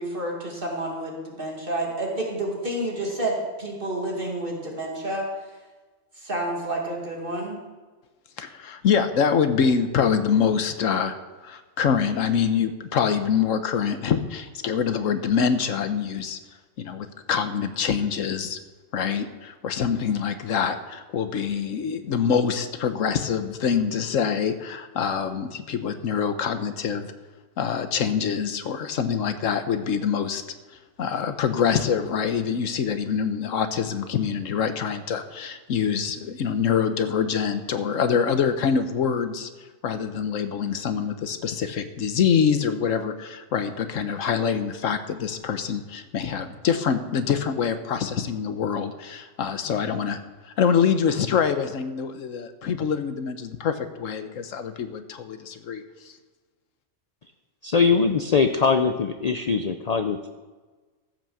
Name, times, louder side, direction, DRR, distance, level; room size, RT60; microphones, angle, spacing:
voice 1, 0.0-5.3 6.2-7.6, right 1 dB, 45° right, -1 dB, 2.3 m, -29 dB
voice 2, 8.4-11.1 11.4-16.4 16.8-18.6 18.9-27.1 27.6-30.4 31.0-39.5 39.8-50.2 50.6-56.1, left 7 dB, 80° left, 10 dB, 1.3 m, -25 dB
voice 3, 57.6-60.3, left 5 dB, 45° left, 7 dB, 0.5 m, -22 dB
14.0 x 6.1 x 7.0 m, 1.3 s
omnidirectional pair, 1.3 m